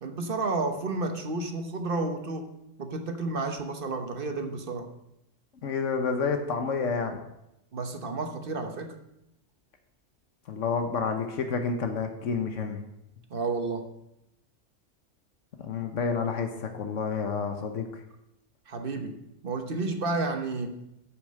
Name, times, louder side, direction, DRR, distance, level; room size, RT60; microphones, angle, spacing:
voice 1, 0.0-2.5 2.8-4.9 7.7-8.9 13.3-13.9 18.7-19.2 19.4-20.8, right 3 dB, 50° right, 6 dB, 1.2 m, -31 dB
voice 2, 5.6-7.2 10.5-12.8 15.6-17.8, left 5 dB, 75° left, 5 dB, 1.3 m, -29 dB
8.4 x 6.5 x 6.4 m, 0.84 s
omnidirectional pair, 1.3 m